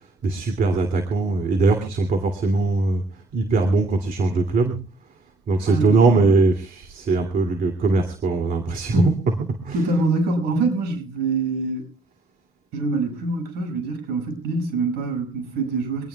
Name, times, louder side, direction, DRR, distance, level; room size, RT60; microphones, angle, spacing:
voice 1, 0.2-4.8 5.5-9.9 10.5-11.0, right 3 dB, 55° right, 2.7 m, -21 dB
voice 2, 5.7-6.3 8.9-9.2 9.7-11.9 12.7-16.1, right 3 dB, 80° right, 6.5 m, -25 dB
24.5 x 18.0 x 2.4 m
cardioid pair, 110°, 17 cm